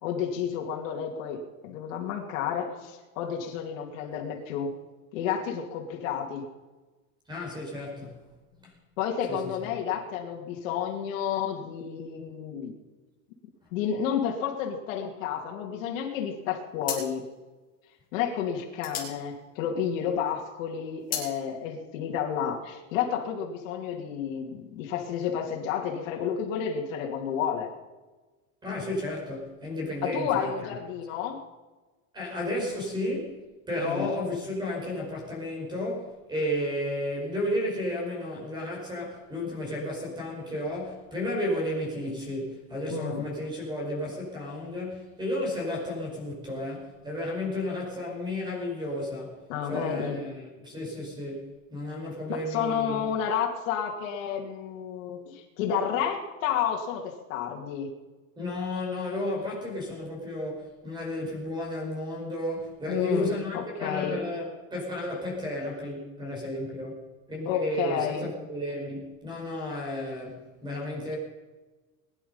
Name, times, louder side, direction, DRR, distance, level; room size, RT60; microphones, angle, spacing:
voice 1, 0.0-4.7 5.1-6.4 9.0-12.7 13.7-17.2 18.1-27.7 30.0-31.4 33.8-34.1 42.9-43.2 49.5-50.2 52.3-57.9 62.9-64.2 67.5-68.3, left 8 dB, 70° left, 0 dB, 2.6 m, -31 dB
voice 2, 7.3-8.2 8.6-8.7 9.3-9.7 28.6-30.8 32.1-53.0 58.4-67.0 67.3-71.2, left 1 dB, 10° right, -1 dB, 5.3 m, -33 dB
sound 1, 16.1-16.4 16.8-20.2 20.5-21.4, left 6 dB, 20° left, 3.7 m, -37 dB
21.5 x 10.5 x 5.5 m, 1.2 s
supercardioid pair, 175°, 40 cm